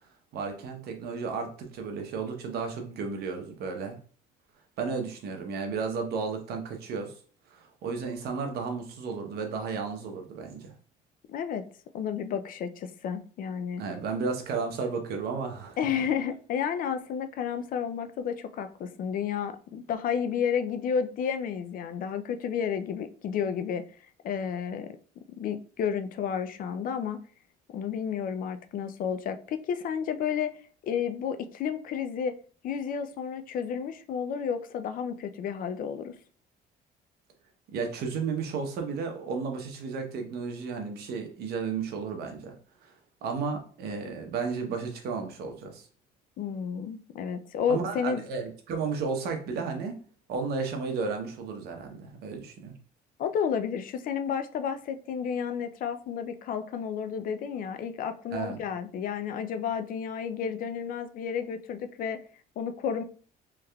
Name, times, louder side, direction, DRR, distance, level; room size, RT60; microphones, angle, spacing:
voice 1, 0.3-4.0 4.8-7.1 7.5-10.7 13.8-16.0 37.7-42.6 42.8-42.9 43.2-45.9 47.7-50.0 50.3-52.7 58.3-58.6, right 5 dB, 70° right, 4 dB, 0.8 m, -33 dB
voice 2, 11.3-11.6 11.9-13.8 15.8-23.8 24.2-25.0 25.4-27.2 27.7-30.5 30.8-32.3 32.6-36.1 46.4-48.2 53.2-62.2 62.6-63.0, left 7 dB, 55° left, 9 dB, 0.4 m, -31 dB
3.4 x 3.2 x 2.3 m, 0.42 s
cardioid pair, 110°, 17 cm